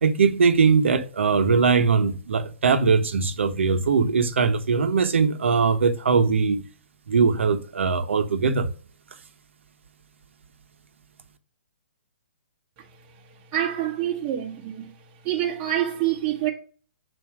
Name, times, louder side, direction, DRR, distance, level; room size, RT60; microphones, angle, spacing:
voice 1, 0.0-6.7 7.1-8.7, right 5 dB, 80° right, 1.0 m, -21 dB
voice 2, 13.5-14.9 15.2-16.5, right 12 dB, 25° right, 1.2 m, -26 dB
7.4 x 2.9 x 6.0 m
hypercardioid pair, 150°, 7 cm